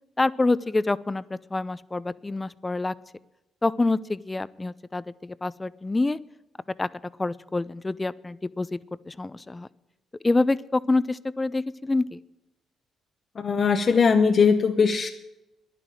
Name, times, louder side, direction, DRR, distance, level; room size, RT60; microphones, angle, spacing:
voice 1, 0.2-2.9 3.6-6.2 6.8-6.9 7.2-8.8 9.1-9.7 10.2-12.2, left 2 dB, 20° left, 17 dB, 0.5 m, -26 dB
voice 2, 13.4-15.1, left 5 dB, 45° left, 6 dB, 0.9 m, -20 dB
11.0 x 10.0 x 8.8 m, 0.94 s
cardioid pair, 90°, 0 cm